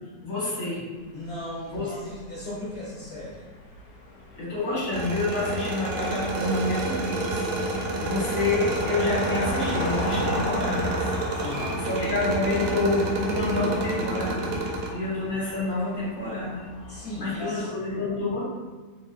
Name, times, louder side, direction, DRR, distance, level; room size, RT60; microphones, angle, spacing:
voice 1, 0.2-0.8 1.7-2.0 4.3-11.1 11.8-14.5 14.9-16.6 17.2-18.4, left 2 dB, 30° left, -9 dB, 1.1 m, -28 dB
sound 1, 1.0-17.4, left 2 dB, 75° left, 1.2 m, -37 dB
voice 2, 1.1-3.4 11.4-11.8 16.9-17.7, left 1 dB, 45° left, -11 dB, 0.8 m, -37 dB
sound 2, 4.9-14.9, right 2 dB, 70° right, 1.1 m, -29 dB
3.0 x 2.8 x 2.3 m, 1.3 s
omnidirectional pair, 1.9 m